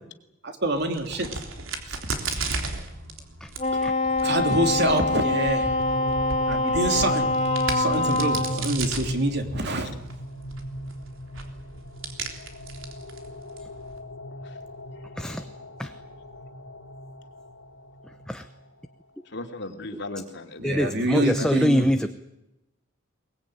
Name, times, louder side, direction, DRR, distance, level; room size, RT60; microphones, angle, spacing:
voice 1, 0.4-1.3 4.2-5.7 6.5-7.3 7.7-10.0 20.6-21.8, right 1 dB, 55° right, 5 dB, 3.2 m, -26 dB
Crack, 0.7-14.0, right 4 dB, 80° right, 3.5 m, -36 dB
Wind instrument woodwind instrument, 3.6-8.6, left 2 dB, 35° left, 2.7 m, -25 dB
sound 1, 4.1-18.9, equal, 80° left, 2.3 m, -38 dB
voice 2, 15.2-15.5 15.8-15.9 18.0-18.5 20.6-22.1, equal, 5° left, 7 dB, 0.9 m, -24 dB
voice 3, 19.2-21.5, left 2 dB, 60° left, 5 dB, 2.8 m, -37 dB
22.5 x 21.0 x 9.2 m, 0.93 s
head